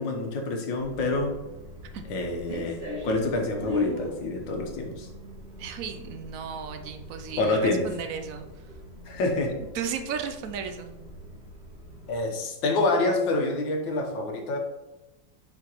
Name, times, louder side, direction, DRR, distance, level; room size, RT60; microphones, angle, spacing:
voice 1, 0.0-1.3 2.1-5.1 7.4-7.9 9.1-9.5 12.1-14.6, left 2 dB, 80° left, 2 dB, 1.7 m, -27 dB
sound 1, 0.8-12.2, left 2 dB, 35° right, 2.1 m, -39 dB
voice 2, 5.6-8.5 9.7-10.9, right 7 dB, 75° right, 7 dB, 0.7 m, -35 dB
7.3 x 5.1 x 3.0 m, 1.1 s
omnidirectional pair, 2.0 m